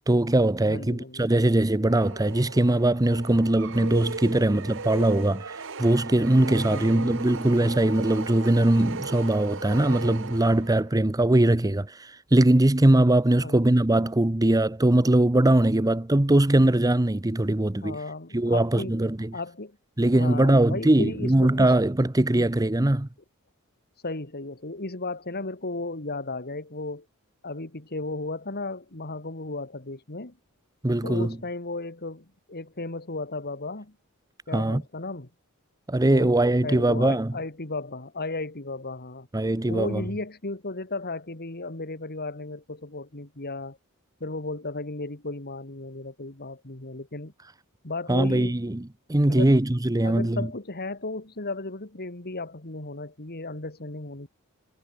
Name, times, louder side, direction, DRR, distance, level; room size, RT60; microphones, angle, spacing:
voice 1, 0.1-18.0 18.3-19.3 20.0-23.1 30.8-31.4 34.5-34.8 35.9-37.3 39.3-40.0 48.1-50.5, right 1 dB, 15° right, 0.8 m, -21 dB
voice 2, 0.6-1.5 6.7-7.3 13.4-13.6 17.8-18.9 19.3-19.8 20.1-21.7 22.3-22.5 24.0-27.1 27.4-30.4 31.0-34.0 34.5-35.3 36.0-39.3 39.7-43.8 44.2-47.3 47.8-48.5 49.3-49.5 50.0-54.4, left 2 dB, 45° left, 2.7 m, -35 dB
sound 1, 1.9-11.0, right 4 dB, 60° right, 2.5 m, -37 dB
head